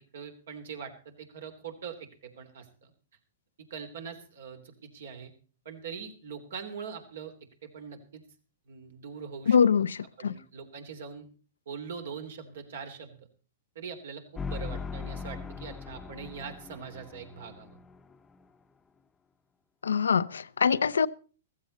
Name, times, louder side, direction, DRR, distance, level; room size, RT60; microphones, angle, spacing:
voice 1, 0.0-2.9 3.7-5.3 5.6-7.3 7.6-8.2 8.7-9.6 10.2-11.3 11.7-13.2 13.7-17.8, right 6 dB, 70° right, 3.3 m, -42 dB
voice 2, 9.5-10.3 19.8-21.1, left 6 dB, 85° left, 0.6 m, -24 dB
sound 1, 14.4-18.4, left 4 dB, 15° left, 0.9 m, -40 dB
15.0 x 15.0 x 4.2 m
hypercardioid pair, 120°, 0 cm